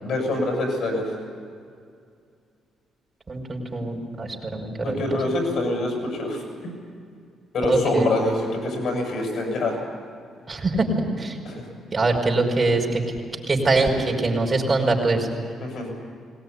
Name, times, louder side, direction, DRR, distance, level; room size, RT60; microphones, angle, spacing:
voice 1, 0.0-1.0 4.8-6.4 7.5-9.8 11.5-11.6 15.6-15.9, left 2 dB, 65° left, 2 dB, 7.2 m, -25 dB
voice 2, 3.3-5.0 7.7-8.1 10.5-10.9 11.2-11.4 11.9-13.0 13.5-15.3, right 3 dB, 35° right, 1 dB, 5.4 m, -23 dB
21.5 x 18.5 x 10.0 m, 2.3 s
supercardioid pair, 55°, 0 cm